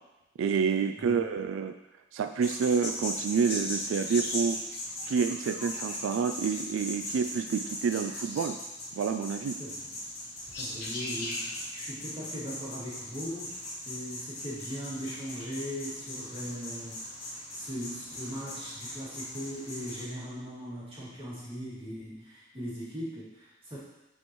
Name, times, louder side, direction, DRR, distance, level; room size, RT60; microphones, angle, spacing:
voice 1, 0.4-1.7 2.1-4.6 5.1-8.6 9.0-9.6, right 6 dB, 80° right, 8 dB, 0.3 m, -28 dB
voice 2, 1.0-1.3 9.6-9.9 10.6-13.6 13.8-17.0 17.3-23.8, equal, 25° right, -9 dB, 2.4 m, -39 dB
sound 1, 2.4-20.0, left 1 dB, 50° left, 2.5 m, -38 dB
9.8 x 4.4 x 3.0 m, 1.0 s
head